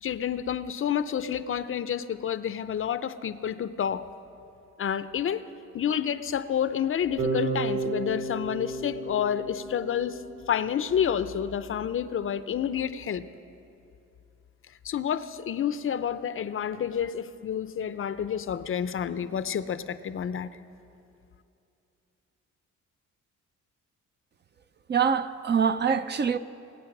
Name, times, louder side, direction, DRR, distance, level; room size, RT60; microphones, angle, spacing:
voice 1, 0.0-4.1 4.8-5.4 5.7-10.2 10.5-13.3 14.8-20.5, left 8 dB, 45° left, 0.6 m, -29 dB
Bass guitar, 7.2-11.2, right 3 dB, 65° right, 4.4 m, -33 dB
voice 2, 24.9-26.4, right 6 dB, 35° right, 0.5 m, -24 dB
21.0 x 8.4 x 6.0 m
cardioid pair, 90°, 30 cm